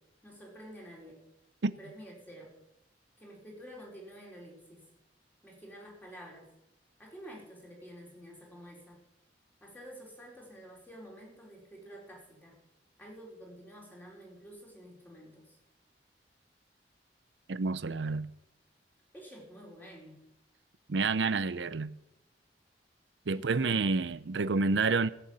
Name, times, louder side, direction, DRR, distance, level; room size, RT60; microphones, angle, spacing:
voice 1, 0.2-1.2 1.8-2.5 3.2-4.8 5.4-6.5 7.0-9.0 9.6-12.6 13.0-15.6 19.1-20.2 23.3-23.8, equal, 10° left, 4.5 m, -50 dB
voice 2, 17.5-18.3 20.9-21.9 23.3-25.1, right 4 dB, 90° right, 0.6 m, -29 dB
16.0 x 6.9 x 9.0 m
head